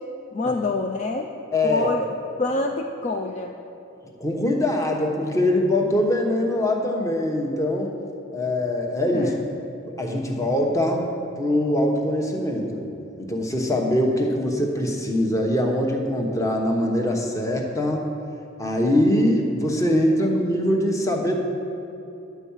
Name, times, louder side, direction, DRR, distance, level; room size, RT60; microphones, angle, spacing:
voice 1, 0.3-1.3 1.6-2.1 2.4-3.5 9.1-9.4, left 2 dB, 35° left, 2 dB, 0.4 m, -26 dB
voice 2, 1.5-1.9 4.2-7.9 8.3-9.3 10.0-11.1 11.4-12.8 13.2-18.1 18.6-21.4, left 1 dB, 15° left, 1 dB, 0.9 m, -22 dB
10.5 x 4.6 x 7.2 m, 2.8 s
head